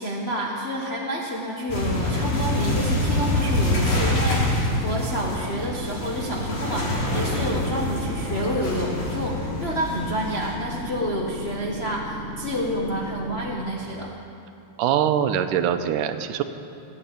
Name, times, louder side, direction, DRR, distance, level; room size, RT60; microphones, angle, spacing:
voice 1, 0.0-14.1, equal, 45° left, -3 dB, 0.7 m, -29 dB
sound 1, 1.7-10.5, left 1 dB, 65° left, 4.7 m, -26 dB
sound 2, 1.9-13.5, right 2 dB, 55° right, 1.6 m, -37 dB
voice 2, 14.8-16.4, right 9 dB, 90° right, 9 dB, 2.4 m, -23 dB
19.0 x 8.4 x 8.9 m, 2.9 s
omnidirectional pair, 3.6 m